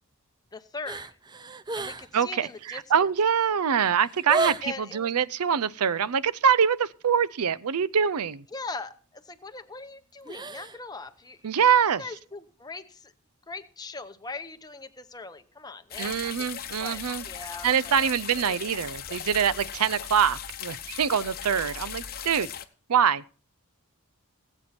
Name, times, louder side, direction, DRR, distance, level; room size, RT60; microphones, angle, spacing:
voice 1, 0.5-1.1 1.7-3.1 4.6-5.1 8.5-11.6 12.0-13.1 13.5-16.2 16.8-18.1 18.5-18.6 21.6-21.7, left 3 dB, 20° left, 0.8 m, -40 dB
sound 1, 0.8-2.2 2.4-2.8 3.4-3.5 3.7-4.8 10.2-10.8 11.1-11.2, right 3 dB, 20° right, 0.5 m, -33 dB
voice 2, 2.1-8.4 11.4-12.0 16.0-17.2 17.6-22.5 22.9-23.2, right 7 dB, 80° right, 0.5 m, -24 dB
sound 2, 15.9-22.7, left 9 dB, 45° left, 0.9 m, -38 dB
19.0 x 8.0 x 4.3 m
head